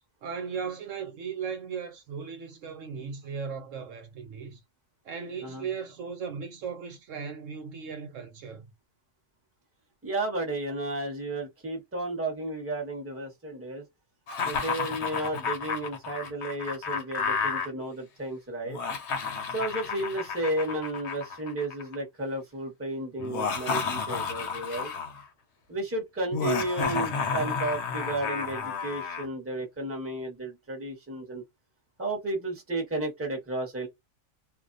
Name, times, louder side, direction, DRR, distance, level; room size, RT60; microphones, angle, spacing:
voice 1, 0.2-4.6 5.0-8.7, right 6 dB, 70° right, 1.0 m, -37 dB
voice 2, 10.0-13.9 14.4-18.8 19.5-24.9 25.7-31.4 32.0-33.9, right 2 dB, 10° right, 0.8 m, -33 dB
Laughter, 14.3-17.7 18.6-22.0 23.2-25.2 26.3-29.3, left 5 dB, 60° left, 0.9 m, -31 dB
2.5 x 2.1 x 2.5 m
omnidirectional pair, 1.4 m